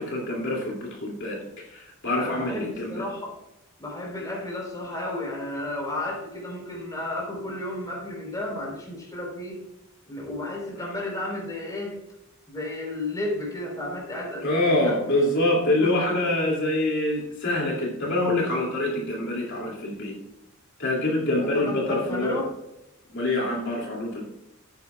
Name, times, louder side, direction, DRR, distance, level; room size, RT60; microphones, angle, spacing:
voice 1, 0.0-1.4 1.7-3.0 14.4-20.1 20.8-22.4 23.1-24.2, left 1 dB, 60° left, -1 dB, 2.7 m, -25 dB
voice 2, 2.2-3.4 3.8-9.6 10.1-12.0 12.5-15.1 15.8-16.3 21.2-22.5, left 1 dB, 20° left, -2 dB, 4.0 m, -33 dB
15.5 x 9.3 x 2.4 m, 0.90 s
head